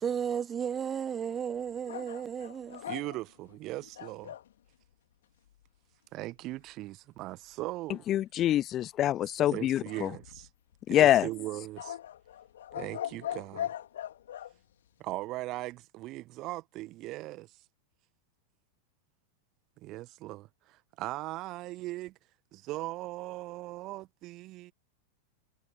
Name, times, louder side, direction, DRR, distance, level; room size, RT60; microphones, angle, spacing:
voice 1, 0.0-2.8, right 8 dB, 20° right, 1.3 m, -33 dB
sound 1, 1.9-4.5 9.9-10.7 11.8-14.5, left 11 dB, 60° left, 3.7 m, -40 dB
voice 2, 2.9-4.3 6.1-8.0 9.5-10.5 10.9-12.0 12.7-13.7 15.0-17.6 19.8-22.1 22.5-24.7, right 18 dB, 40° right, 1.2 m, -39 dB
voice 3, 8.1-10.1 10.9-11.3, left 12 dB, 30° left, 0.4 m, -25 dB
figure-of-eight pair, 90°, 0 cm